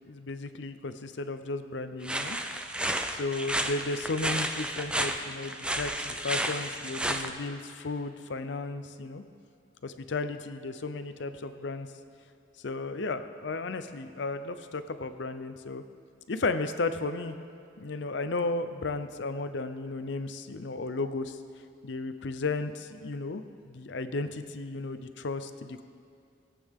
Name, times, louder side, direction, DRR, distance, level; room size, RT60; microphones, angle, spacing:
voice 1, 0.0-2.4 3.1-9.2 9.8-11.9 12.6-15.8 16.3-17.4 17.8-21.4 21.8-25.8, left 3 dB, 65° left, 10 dB, 0.6 m, -34 dB
sound 1, 2.0-7.3, right 1 dB, 5° right, 0.5 m, -32 dB
Bass drum, 5.7-7.4, right 1 dB, 60° right, 1.3 m, -56 dB
20.0 x 8.4 x 3.6 m, 2.3 s
head